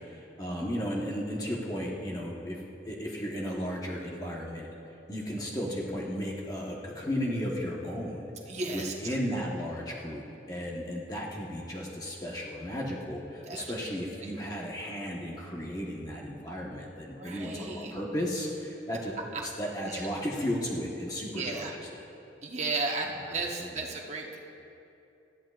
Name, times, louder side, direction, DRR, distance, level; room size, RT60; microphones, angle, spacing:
voice 1, 0.0-2.6 2.9-4.7 5.1-8.3 8.7-19.1 19.4-22.0 23.1-23.8, equal, 20° left, -3 dB, 1.2 m, -35 dB
voice 2, 8.5-8.9 13.5-13.6 17.2-17.9 19.9-20.1 21.3-21.7 22.4-24.4, right 3 dB, 40° right, 0 dB, 1.2 m, -34 dB
19.0 x 13.5 x 2.5 m, 2.7 s
head